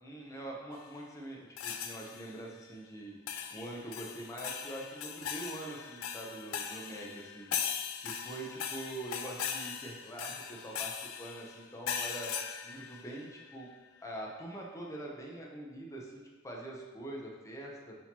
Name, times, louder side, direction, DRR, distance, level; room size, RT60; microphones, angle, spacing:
voice 1, 0.0-3.1 3.5-7.5 8.0-12.3 12.6-13.7 14.0-18.0, right 1 dB, 15° left, -2 dB, 0.6 m, -44 dB
sound 1, 1.6-2.4 3.3-13.5, left 8 dB, 80° left, 0.4 m, -39 dB
6.1 x 2.8 x 2.9 m, 1.3 s
head